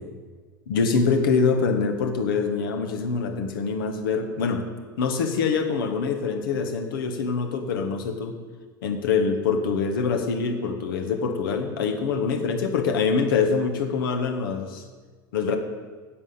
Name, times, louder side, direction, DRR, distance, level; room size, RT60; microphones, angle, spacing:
voice 1, 0.7-4.6 5.0-8.4 8.8-14.8 15.3-15.6, left 5 dB, 70° left, 5 dB, 1.6 m, -24 dB
9.5 x 8.2 x 8.6 m, 1.4 s
figure-of-eight pair, 80°, 12 cm